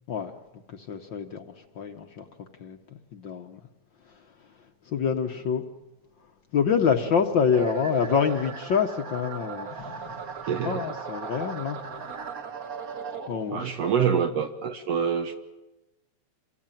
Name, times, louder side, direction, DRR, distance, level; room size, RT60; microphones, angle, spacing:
voice 1, 0.7-2.3 2.6-2.8 3.1-3.6 4.1-4.2 4.8-5.6 6.5-10.2 10.6-12.1 13.3-14.1, left 6 dB, 60° left, 6 dB, 1.2 m, -27 dB
sound 1, 7.5-13.7, right 6 dB, 50° right, 1.1 m, -37 dB
voice 2, 10.5-10.9 13.5-15.3, right 7 dB, 65° right, 5 dB, 1.9 m, -26 dB
27.0 x 19.0 x 9.1 m, 1.1 s
omnidirectional pair, 3.4 m